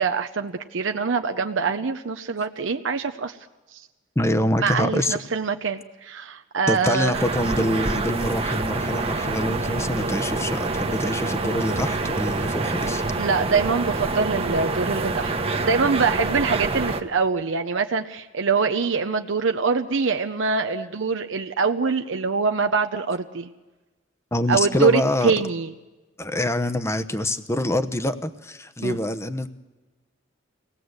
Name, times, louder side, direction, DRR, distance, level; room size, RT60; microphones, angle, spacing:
voice 1, 0.0-3.4 3.7-3.8 4.6-7.2 13.2-15.3 15.6-23.5 24.5-25.7 28.8-29.0, right 5 dB, 70° right, 6 dB, 0.7 m, -24 dB
voice 2, 4.2-5.2 6.7-13.0 17.4-17.5 19.9-20.0 20.7-20.9 24.3-25.3 26.2-29.5, left 1 dB, 15° left, 11 dB, 0.8 m, -25 dB
sound 1, 7.1-17.0, right 3 dB, 30° right, 1.1 m, -26 dB
24.5 x 18.5 x 8.0 m, 1.2 s
head